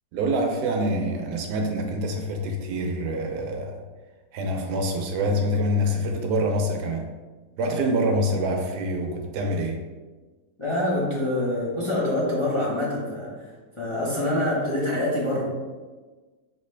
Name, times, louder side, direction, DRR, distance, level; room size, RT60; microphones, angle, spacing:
voice 1, 0.1-3.8 4.3-7.0 7.6-9.8, equal, 75° right, 3 dB, 1.2 m, -26 dB
voice 2, 10.6-13.5 13.8-15.5, left 1 dB, 20° left, -8 dB, 0.9 m, -25 dB
5.1 x 3.1 x 3.2 m, 1.3 s
omnidirectional pair, 1.8 m